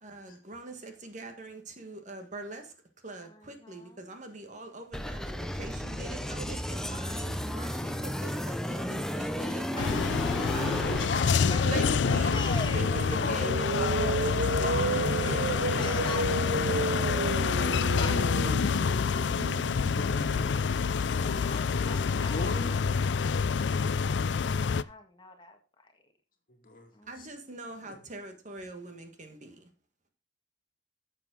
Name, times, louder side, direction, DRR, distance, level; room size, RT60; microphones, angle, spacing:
voice 1, 0.0-2.7 3.0-9.9 10.5-10.8 11.6-12.3 12.7-16.4 16.7-16.9 27.1-29.6, right 2 dB, 40° right, 6 dB, 1.7 m, -42 dB
voice 2, 3.2-4.2 9.4-9.8 11.5-11.6 12.1-13.2 15.2-15.5 15.8-18.1 20.5-20.7 21.4-23.8 24.8-26.1 26.9-28.0, left 2 dB, 25° left, 5 dB, 1.8 m, -44 dB
sound 1, 4.9-11.1, equal, 5° left, 0.7 m, -33 dB
sound 2, 9.8-24.8, left 5 dB, 75° left, 0.4 m, -27 dB
voice 3, 10.8-12.6 12.9-13.6 14.5-15.8 19.7-22.8 26.5-26.9 27.2-27.3 27.8-28.0, left 2 dB, 50° left, 3 dB, 2.4 m, -40 dB
sound 3, 11.6-21.7, right 3 dB, 60° right, 0.6 m, -33 dB
11.5 x 7.5 x 3.8 m, 0.35 s
head